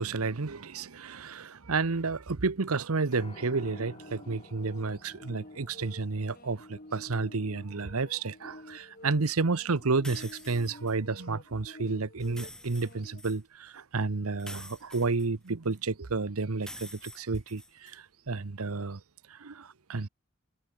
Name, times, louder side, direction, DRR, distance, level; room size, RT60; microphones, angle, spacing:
voice 1, 0.0-19.0 19.3-20.1, right 4 dB, 85° right, 1.0 m, -31 dB
Piano, 3.1-11.4, left 2 dB, 25° left, 5.1 m, -56 dB
sound 1, 3.4-13.2, left 1 dB, 45° left, 4.3 m, -50 dB
sound 2, 10.0-10.9 12.2-13.4 14.4-15.8 16.6-18.0, left 1 dB, 5° left, 3.8 m, -47 dB
head